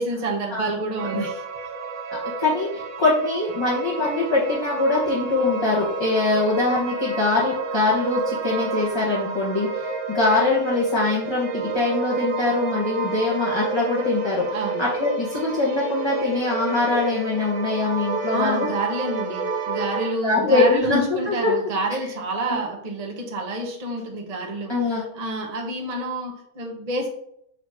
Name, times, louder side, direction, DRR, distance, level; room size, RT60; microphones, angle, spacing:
voice 1, 0.0-1.4 14.5-14.9 18.3-27.1, right 1 dB, 30° right, 1 dB, 0.9 m, -28 dB
sound 1, 1.0-20.1, right 4 dB, 75° right, 1.3 m, -30 dB
voice 2, 2.4-18.7 20.2-21.5 22.4-22.6 24.7-25.1, left 3 dB, 20° left, -6 dB, 1.1 m, -23 dB
6.9 x 2.9 x 4.8 m, 0.74 s
omnidirectional pair, 1.6 m